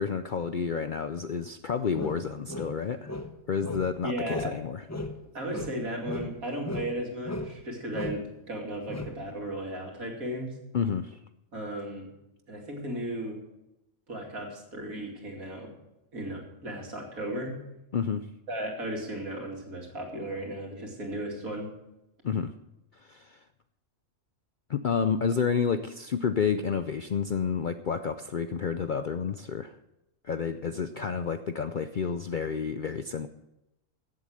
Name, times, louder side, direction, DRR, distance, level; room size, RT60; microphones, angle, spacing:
voice 1, 0.0-3.1 3.5-4.8 10.7-11.2 17.9-18.3 22.2-22.5 23.1-23.4 24.7-29.7 30.2-33.3, left 6 dB, 60° left, 10 dB, 0.5 m, -30 dB
sound 1, 1.9-4.0 4.3-4.6 4.9-7.0 7.2-7.6 7.9-8.3 8.9-9.2, left 2 dB, 15° left, 0.7 m, -36 dB
voice 2, 4.0-4.6 5.3-10.5 11.5-12.1 12.5-13.4 14.1-15.7 16.1-17.6 18.5-21.7, right 1 dB, 80° right, 0 dB, 3.1 m, -35 dB
15.5 x 7.8 x 6.4 m, 0.91 s
omnidirectional pair, 1.4 m